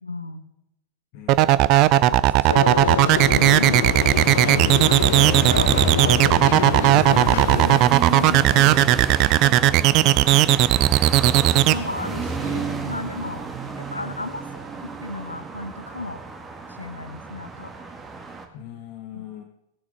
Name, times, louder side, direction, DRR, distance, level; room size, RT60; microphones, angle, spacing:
voice 1, 0.0-0.4 1.9-4.0 4.3-6.2 6.8-8.8 10.4-10.7 11.6-13.4 13.9-16.2 16.7-17.7 19.1-19.3, left 2 dB, 85° left, 11 dB, 1.1 m, -33 dB
voice 2, 1.1-1.5 9.7-10.8 18.5-19.4, left 10 dB, 45° left, 2 dB, 1.6 m, -41 dB
sound 1, 1.3-11.7, right 15 dB, 40° right, 0.6 m, -16 dB
sound 2, 2.5-7.8, left 11 dB, 60° left, 0.4 m, -27 dB
sound 3, 3.1-18.5, right 3 dB, 15° right, 1.9 m, -31 dB
16.5 x 9.7 x 4.8 m, 0.86 s
figure-of-eight pair, 90°, 0 cm